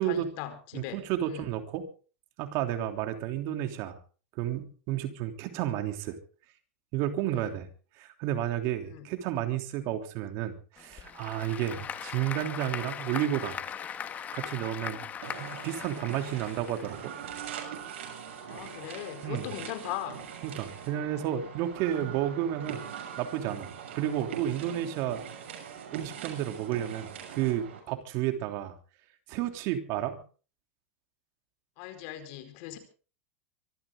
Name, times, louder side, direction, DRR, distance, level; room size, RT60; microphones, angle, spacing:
voice 1, 0.0-1.0 1.3-1.5 8.8-9.1 11.7-11.8 18.5-20.3 31.8-32.8, left 12 dB, 55° left, 10 dB, 4.7 m, -39 dB
voice 2, 0.7-1.9 2.4-4.0 4.4-6.2 6.9-7.7 8.0-13.6 14.3-15.0 15.4-17.1 19.2-19.5 20.4-22.9 23.2-25.2 25.9-28.8 29.3-30.2, right 12 dB, 50° right, 6 dB, 3.1 m, -31 dB
Applause / Crowd, 10.8-17.3, left 8 dB, 25° left, 1.6 m, -39 dB
sound 1, 15.2-27.8, right 8 dB, 80° right, 6.7 m, -42 dB
24.5 x 14.0 x 3.7 m, 0.38 s
supercardioid pair, 140°, 7 cm